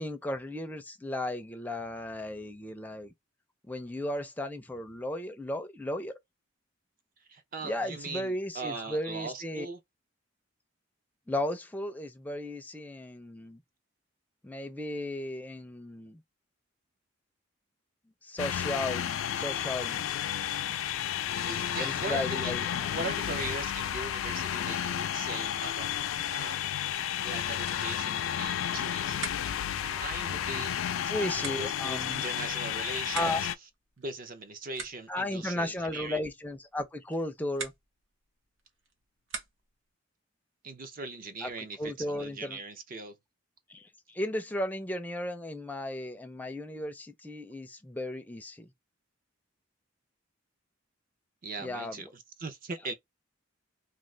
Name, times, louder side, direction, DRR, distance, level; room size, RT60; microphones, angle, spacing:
voice 1, 0.0-3.1 3.7-6.1 7.6-9.7 11.3-13.6 14.4-16.2 18.2-20.1 21.8-22.9 31.1-32.2 33.1-33.4 35.1-37.7 41.4-41.5 41.8-42.6 43.7-48.7 51.6-52.0, left 1 dB, 10° left, 0.4 m, -35 dB
voice 2, 7.2-9.8 21.4-22.6 22.9-25.9 26.3-26.6 27.2-29.3 29.8-33.5 34.0-36.3 40.6-43.2 51.4-52.9, right 3 dB, 45° right, 0.6 m, -40 dB
sound 1, 18.4-33.5, left 10 dB, 85° left, 0.3 m, -32 dB
sound 2, 27.6-39.9, right 4 dB, 70° right, 0.9 m, -47 dB
2.4 x 2.4 x 3.2 m
head